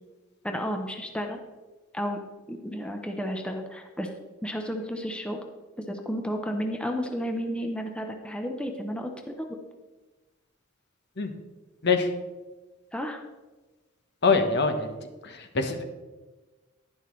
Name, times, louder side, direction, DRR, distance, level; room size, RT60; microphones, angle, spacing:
voice 1, 0.4-1.4 1.9-2.2 2.5-4.1 4.4-5.4 5.9-9.6 12.9-13.2, equal, 5° left, 3 dB, 0.8 m, -32 dB
voice 2, 14.2-15.0 15.2-15.8, left 4 dB, 60° left, 6 dB, 1.1 m, -24 dB
11.0 x 10.5 x 3.2 m, 1.2 s
head